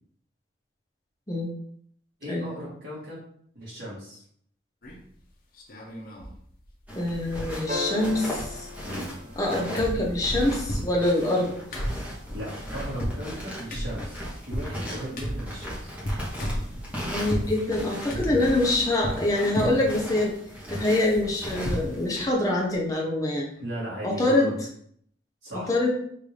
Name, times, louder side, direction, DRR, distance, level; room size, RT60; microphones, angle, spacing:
voice 1, 2.2-3.2 3.5-4.2 8.8-9.1 12.3-15.9 18.3-18.5 23.6-24.5 25.4-25.9, equal, 75° right, -9 dB, 1.5 m, -37 dB
sound 1, 4.8-5.2 5.6-6.4 6.6-6.7 7.0-7.9 8.1-9.5 9.8-17.5 18.1-19.2 19.5-20.0 20.4-21.9 22.3-22.4 22.7-22.9, equal, 50° left, 1.0 m, -34 dB
voice 2, 6.9-8.7 9.4-11.8 17.0-20.3 20.7-23.5 24.0-24.5 25.5-25.9, left 2 dB, 20° left, -2 dB, 0.8 m, -25 dB
sound 2, 6.9-22.3, equal, 10° right, 1.0 m, -38 dB
sound 3, 7.7-10.2 12.4-12.5, left 2 dB, 45° right, 0.6 m, -36 dB
5.3 x 2.6 x 3.3 m, 0.65 s
head